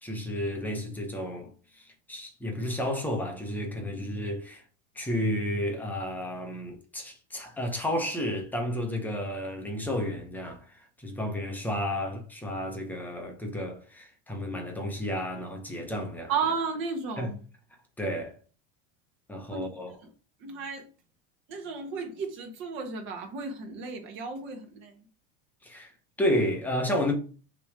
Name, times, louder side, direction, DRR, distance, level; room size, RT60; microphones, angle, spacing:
voice 1, 0.0-4.6 4.9-16.3 17.2-17.3 18.0-18.4 19.3-19.9 25.6-25.9 26.2-27.1, left 1 dB, 5° left, 0.8 m, -32 dB
voice 2, 16.3-17.4 19.5-20.1 20.4-20.9 21.5-25.1, right 5 dB, 40° right, 1.4 m, -34 dB
6.7 x 3.1 x 4.8 m
cardioid pair, 170°, 31 cm